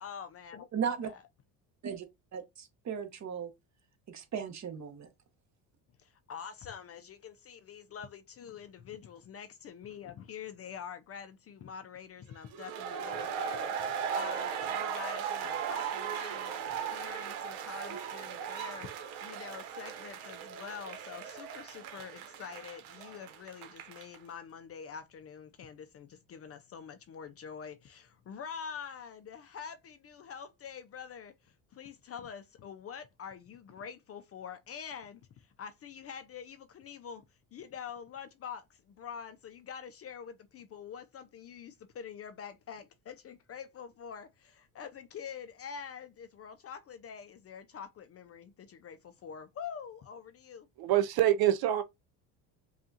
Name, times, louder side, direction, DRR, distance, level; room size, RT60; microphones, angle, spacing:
voice 1, 0.0-1.2 6.0-37.2 37.5-50.7, left 7 dB, 35° left, 0.4 m, -46 dB
voice 2, 0.7-1.1 1.8-2.1 2.3-3.5 4.1-5.1, right 7 dB, 40° right, 1.0 m, -36 dB
sound 1, 12.5-24.2, right 7 dB, 85° right, 1.0 m, -37 dB
voice 3, 50.8-51.8, right 12 dB, 55° right, 0.5 m, -25 dB
5.3 x 2.4 x 2.7 m
supercardioid pair, 95°, 44 cm